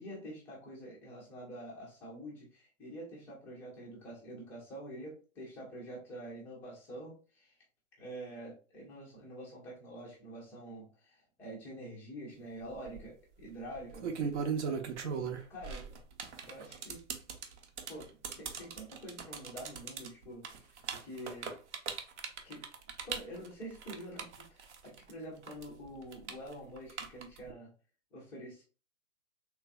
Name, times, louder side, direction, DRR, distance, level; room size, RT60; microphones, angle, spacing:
voice 1, 0.0-7.6 8.0-14.3 15.1-15.2 15.5-15.9 16.5-17.0 17.9-20.8 21.0-21.6 22.4-22.7 23.0-27.7 28.1-28.6, right 1 dB, 5° left, -3 dB, 0.4 m, -47 dB
sound 1, 12.7-13.0 13.8-25.1 25.4-27.5, right 6 dB, 55° right, 0.8 m, -38 dB
3.4 x 3.1 x 2.4 m, 0.36 s
hypercardioid pair, 135°, 41 cm